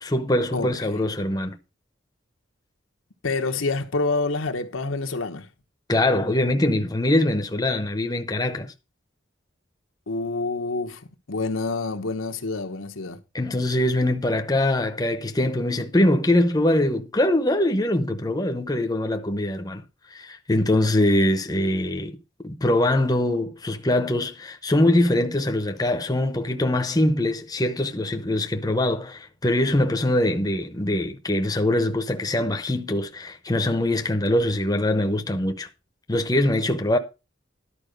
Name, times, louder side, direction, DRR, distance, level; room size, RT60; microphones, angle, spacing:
voice 1, 0.0-1.6 5.9-8.7 13.3-19.8 20.1-35.7 36.1-37.0, left 1 dB, 20° left, 0.8 m, -23 dB
voice 2, 0.5-1.0 3.2-5.5 10.1-13.2, left 3 dB, 90° left, 1.1 m, -27 dB
11.5 x 4.7 x 6.5 m
head